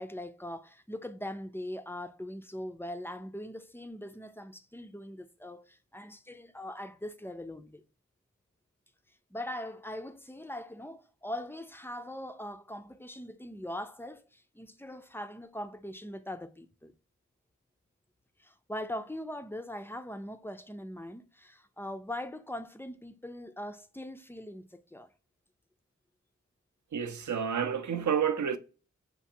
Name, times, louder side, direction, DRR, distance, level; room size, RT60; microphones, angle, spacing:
voice 1, 0.0-7.8 9.3-16.9 18.4-25.1, left 1 dB, 10° left, 0.4 m, -41 dB
voice 2, 26.9-28.6, right 7 dB, 70° right, 0.5 m, -29 dB
5.6 x 2.5 x 2.7 m
cardioid pair, 40°, 31 cm